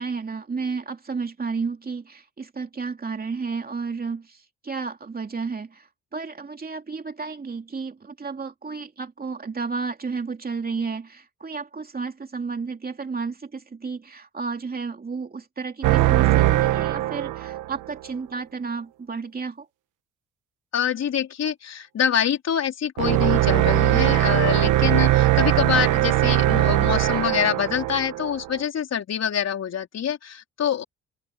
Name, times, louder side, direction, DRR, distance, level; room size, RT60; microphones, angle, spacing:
voice 1, 0.0-19.7, right 4 dB, 30° right, 2.7 m, -32 dB
sound 1, 15.8-17.9 23.0-28.6, right 15 dB, 90° right, 1.3 m, -20 dB
voice 2, 20.7-30.8, left 8 dB, 60° left, 4.0 m, -25 dB
cardioid pair, 90°, 30 cm